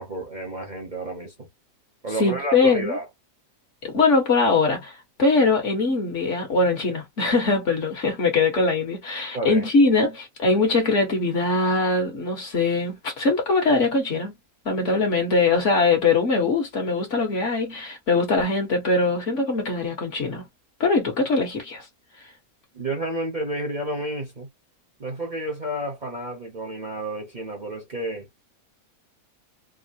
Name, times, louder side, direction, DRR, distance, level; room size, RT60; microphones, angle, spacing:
voice 1, 0.0-1.5 2.0-3.0 9.3-9.7 22.7-24.5 25.0-28.3, right 2 dB, 35° right, 0.9 m, -30 dB
voice 2, 2.2-3.0 3.8-14.3 14.6-20.4 20.8-21.8, left 3 dB, 55° left, 1.5 m, -22 dB
3.6 x 2.0 x 2.4 m
omnidirectional pair, 1.6 m